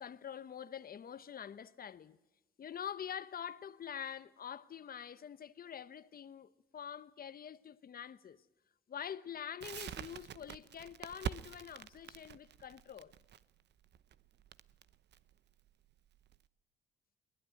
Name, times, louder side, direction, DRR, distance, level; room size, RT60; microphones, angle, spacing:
voice 1, 0.0-2.2 2.6-8.4 8.9-13.1, left 8 dB, 50° left, 1.0 m, -46 dB
Crackle, 9.6-16.4, right 9 dB, 60° right, 0.8 m, -46 dB
21.5 x 19.5 x 9.2 m
cardioid pair, 90°, 20 cm